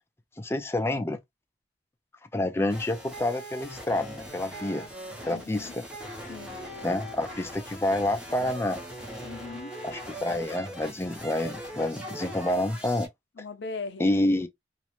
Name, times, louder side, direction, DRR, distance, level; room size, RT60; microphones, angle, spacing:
voice 1, 0.4-1.2 2.3-4.9 5.3-5.8 6.8-8.8 9.8-13.1 14.0-14.5, left 1 dB, 15° left, 0.3 m, -28 dB
sound 1, 2.7-13.1, right 1 dB, 5° right, 0.7 m, -41 dB
voice 2, 5.2-5.8 6.3-6.6 9.2-9.7 13.4-14.3, left 4 dB, 70° left, 0.5 m, -39 dB
2.4 x 2.1 x 2.9 m
head